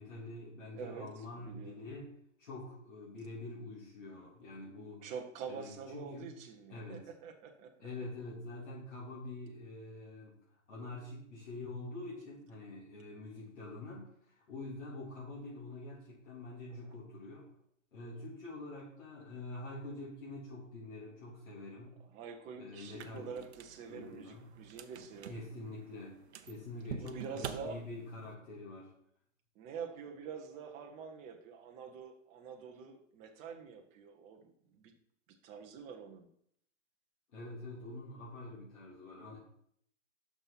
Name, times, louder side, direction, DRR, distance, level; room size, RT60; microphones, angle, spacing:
voice 1, 0.0-2.1 2.4-5.1 5.5-6.3 6.7-7.1 7.8-17.5 17.9-22.0 22.6-23.3 23.9-24.6 25.2-26.2 26.4-28.9 37.3-39.4, left 2 dB, 65° left, -7 dB, 3.5 m, -46 dB
voice 2, 0.7-1.1 1.4-1.9 5.0-7.7 22.1-25.4 26.9-27.8 29.5-34.9 35.4-36.3, right 6 dB, 15° right, 4 dB, 0.8 m, -46 dB
sound 1, 22.8-28.3, right 8 dB, 55° right, 0.8 m, -48 dB
6.4 x 6.1 x 5.8 m, 0.68 s
figure-of-eight pair, 130°, 39 cm